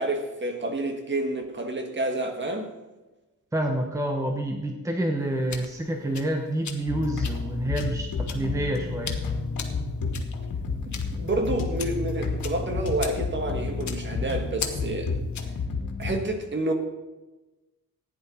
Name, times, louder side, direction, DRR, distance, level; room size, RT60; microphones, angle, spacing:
voice 1, 0.0-2.7 10.9-15.1 16.0-16.7, right 2 dB, 35° right, 1.5 m, -29 dB
voice 2, 3.5-9.2, right 1 dB, 10° right, 1.0 m, -28 dB
sound 1, 5.2-15.6, left 6 dB, 60° left, 1.3 m, -40 dB
sound 2, 6.9-16.2, left 4 dB, 80° left, 1.9 m, -31 dB
15.0 x 10.0 x 4.3 m
wide cardioid pair, 160°, 33 cm